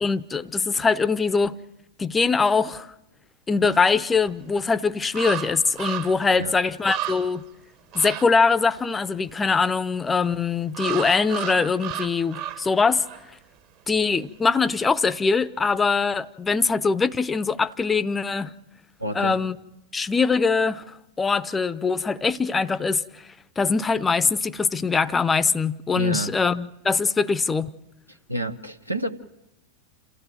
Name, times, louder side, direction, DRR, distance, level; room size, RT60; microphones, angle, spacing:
voice 1, 0.0-1.6 2.0-2.9 3.5-7.4 7.9-13.0 13.9-18.5 19.1-19.6 19.9-23.0 23.6-27.7, left 4 dB, 15° left, 0.8 m, -22 dB
sound 1, 4.3-4.4 5.1-6.3 6.6-6.7 6.8-7.4 7.9-8.2 10.7-12.7 13.0-13.2, right 11 dB, 40° right, 1.5 m, -33 dB
voice 2, 19.0-19.4 25.9-26.3 28.1-29.1, right 2 dB, 85° right, 1.1 m, -29 dB
28.0 x 15.0 x 7.8 m
figure-of-eight pair, 90°, 0 cm